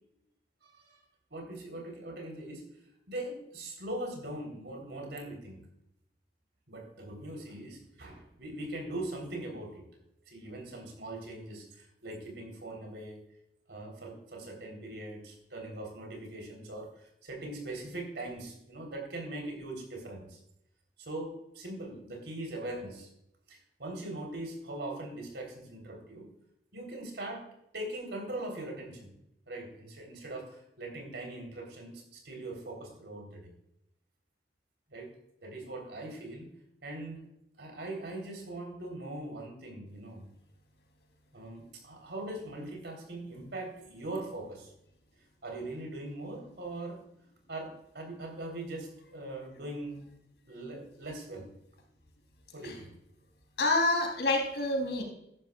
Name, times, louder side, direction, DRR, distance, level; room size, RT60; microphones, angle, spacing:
voice 1, 0.6-1.0 1.3-2.7 3.1-5.6 6.7-9.8 10.3-13.2 13.7-20.4 21.0-23.1 23.5-26.3 26.7-27.4 27.7-29.2 29.5-33.5 34.9-35.1 35.4-36.5 36.8-37.2 37.6-40.3 41.3-44.7 45.4-47.0 47.5-50.0 50.5-51.5 52.5-52.9, right 1 dB, 80° right, 2 dB, 3.6 m, -41 dB
voice 2, 53.6-55.0, left 2 dB, 80° left, 1 dB, 3.4 m, -27 dB
13.5 x 11.5 x 2.4 m, 0.78 s
head